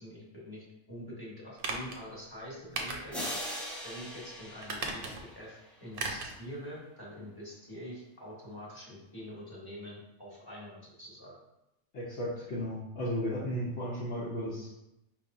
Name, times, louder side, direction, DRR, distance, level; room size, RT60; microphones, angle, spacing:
voice 1, 0.0-3.2 3.8-11.4, equal, 20° left, -7 dB, 1.2 m, -45 dB
sound 1, 1.6-2.0 2.8-3.4 3.8-3.9 4.6-5.4 5.9-6.4 6.7-6.8, right 3 dB, 55° right, 0.7 m, -37 dB
sound 2, 3.1-5.8, equal, ahead, 0.8 m, -40 dB
voice 2, 11.9-14.7, equal, 70° left, -7 dB, 1.1 m, -34 dB
4.8 x 3.3 x 2.6 m, 0.87 s
omnidirectional pair, 1.2 m